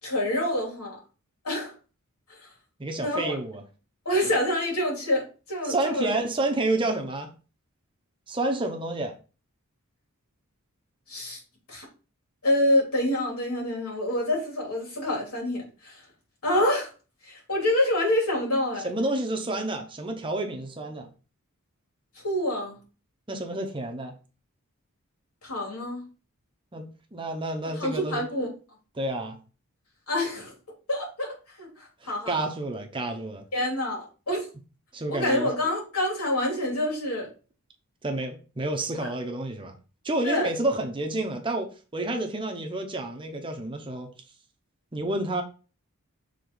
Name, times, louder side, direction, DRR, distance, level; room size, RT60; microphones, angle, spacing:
voice 1, 0.0-1.0 1.4-1.7 2.3-2.5 3.0-3.4 4.0-6.1 11.1-11.4 11.7-11.8 12.4-16.0 16.4-16.9 17.2-18.9 22.1-22.8 25.4-26.1 27.6-28.5 30.1-30.5 30.9-32.5 33.5-34.5 35.1-37.3 39.0-39.1 40.2-40.5, left 1 dB, 80° left, 3.3 m, -27 dB
voice 2, 2.8-3.6 5.6-7.3 8.3-9.1 18.8-21.1 23.3-24.1 26.7-28.3 28.9-29.4 32.0-33.4 34.9-35.5 38.0-39.8 40.0-44.1 44.9-45.4, right 2 dB, 20° right, 0.9 m, -29 dB
6.9 x 3.7 x 3.8 m
head